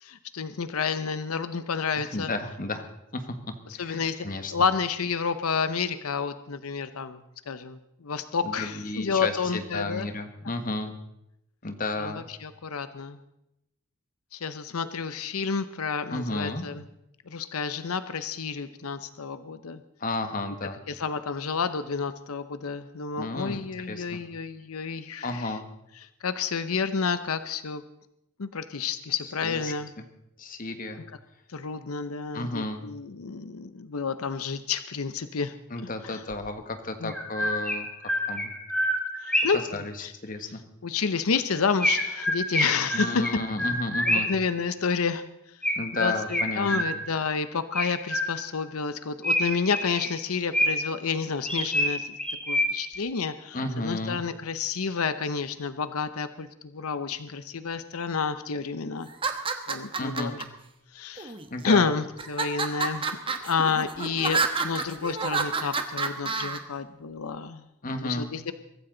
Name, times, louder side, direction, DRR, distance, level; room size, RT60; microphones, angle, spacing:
voice 1, 0.0-2.3 3.8-4.3 4.5-7.2 7.5-10.1 12.0-13.2 14.3-16.8 17.3-19.8 20.9-25.5 26.2-27.8 28.4-29.9 31.5-35.5 36.0-36.2 37.0-37.1 39.2-39.6 40.0-40.1 40.8-43.2 44.1-45.2 45.9-52.1 52.5-59.1 59.7-60.4 60.9-61.3 61.6-67.6 68.0-68.5, left 5 dB, 90° left, 11 dB, 0.8 m, -30 dB
voice 2, 2.0-2.9 3.1-3.3 3.7-4.5 8.4-10.9 11.6-12.2 16.1-16.7 20.0-20.8 23.1-24.2 25.2-25.6 29.4-30.0 30.4-31.0 32.3-32.8 35.7-37.9 38.3-38.5 39.5-40.6 42.9-44.3 45.8-46.9 53.5-54.2 60.0-60.3 61.5-61.9 67.8-68.3, left 2 dB, 40° left, 7 dB, 1.5 m, -33 dB
Chirp tweet, 36.3-36.4 37.1-39.7 41.8-44.5 45.6-47.2 47.7-48.6 49.2-51.0 51.5-53.0, equal, 5° left, 2.2 m, -27 dB
sound 1, 59.1-60.4 61.2-61.7 62.2-66.6, right 4 dB, 25° right, 1.1 m, -29 dB
23.0 x 14.0 x 3.9 m, 0.85 s
head